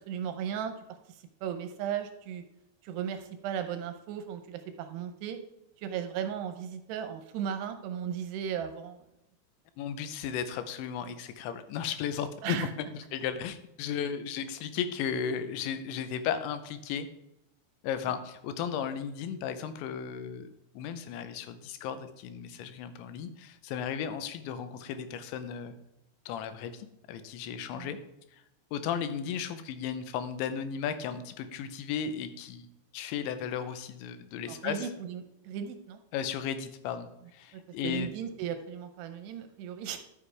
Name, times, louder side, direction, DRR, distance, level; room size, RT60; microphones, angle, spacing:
voice 1, 0.1-0.7 1.1-2.4 2.8-5.4 5.8-9.0 12.4-12.7 14.0-14.1 27.7-27.9 34.5-36.0 37.8-40.0, right 8 dB, 80° right, 8 dB, 2.6 m, -36 dB
voice 2, 9.8-12.6 12.9-17.1 17.8-20.5 20.7-25.7 26.3-28.0 28.7-34.9 36.1-38.1, left 8 dB, 85° left, 10 dB, 3.1 m, -35 dB
12.5 x 6.7 x 3.3 m, 0.86 s
omnidirectional pair, 5.1 m